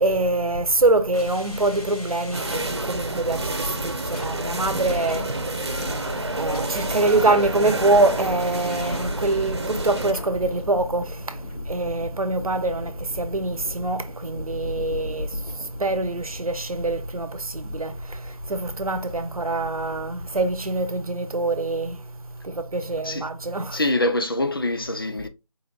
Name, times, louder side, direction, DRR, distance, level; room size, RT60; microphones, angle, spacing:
voice 1, 0.0-3.4 3.8-5.2 6.3-11.1 11.7-12.9 13.2-15.3 15.8-17.3 17.5-17.9 18.5-22.0 22.7-23.7, right 2 dB, 75° right, 0.9 m, -24 dB
sound 1, 1.1-20.8, left 1 dB, 80° left, 2.7 m, -37 dB
sound 2, 2.3-10.1, right 2 dB, 45° right, 0.9 m, -30 dB
voice 2, 23.7-25.3, left 1 dB, 40° left, 0.5 m, -24 dB
4.4 x 4.1 x 2.4 m
figure-of-eight pair, 165°, 19 cm